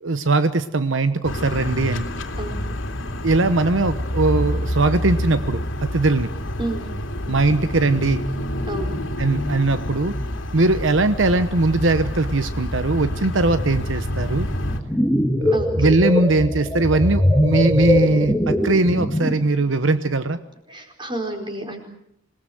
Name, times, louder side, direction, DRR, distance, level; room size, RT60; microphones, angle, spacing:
voice 1, 0.0-2.1 3.2-6.3 7.3-8.2 9.2-10.1 10.5-14.5 15.4-20.4, right 2 dB, 80° right, 10 dB, 1.0 m, -20 dB
sound 1, 1.2-14.8, equal, 80° left, 2.8 m, -27 dB
voice 2, 2.4-2.8 6.6-6.9 8.6-9.0 15.5-15.7 20.7-21.8, right 2 dB, 25° right, 4 dB, 4.7 m, -30 dB
sound 2, 14.7-19.5, left 1 dB, 5° left, 1.8 m, -21 dB
27.0 x 20.0 x 7.8 m, 0.75 s
head